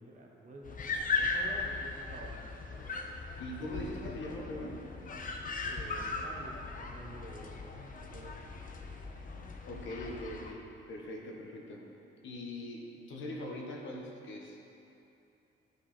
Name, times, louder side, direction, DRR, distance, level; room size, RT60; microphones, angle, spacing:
voice 1, 0.0-2.9 5.7-7.7 8.0-8.4, right 1 dB, 40° right, -1 dB, 1.4 m, -49 dB
sound 1, 0.6-10.5, left 3 dB, 45° left, 0.8 m, -38 dB
voice 2, 3.4-4.9 9.7-11.9 12.2-14.6, left 1 dB, 70° left, -1 dB, 1.3 m, -41 dB
11.0 x 5.1 x 4.3 m, 2.8 s
cardioid pair, 90°, 20 cm